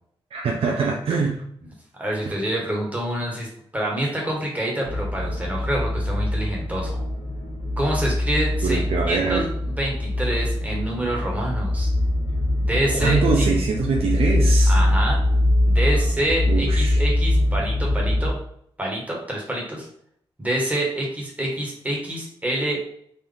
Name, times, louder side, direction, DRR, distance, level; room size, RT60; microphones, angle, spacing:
voice 1, 0.3-1.4 8.6-9.4 12.9-14.8 16.5-17.0, right 5 dB, 85° right, -1 dB, 0.6 m, -23 dB
voice 2, 1.6-7.0 7.8-11.9 12.6-13.4 14.7-15.2 15.6-18.3 18.8-19.9 20.4-22.9, right 1 dB, 15° right, -2 dB, 1.5 m, -27 dB
sound 1, 4.8-18.3, left 1 dB, 90° left, 1.6 m, -22 dB
4.0 x 2.8 x 3.5 m, 0.66 s
wide cardioid pair, 90°, 10 cm